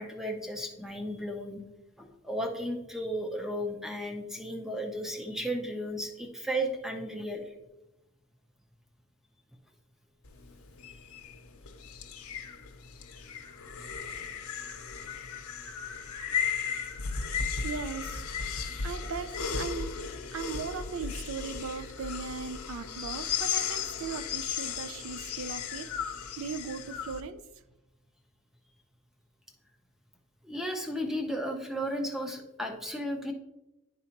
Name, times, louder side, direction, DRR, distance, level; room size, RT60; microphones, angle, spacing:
voice 1, 0.0-1.6 2.0-7.5 30.4-33.3, equal, ahead, 3 dB, 0.7 m, -34 dB
sound 1, 10.2-27.2, left 6 dB, 90° left, 0.7 m, -35 dB
voice 2, 17.6-19.9 20.3-25.9 26.4-27.4, right 5 dB, 70° right, 11 dB, 0.4 m, -38 dB
11.0 x 4.0 x 2.9 m, 0.96 s
head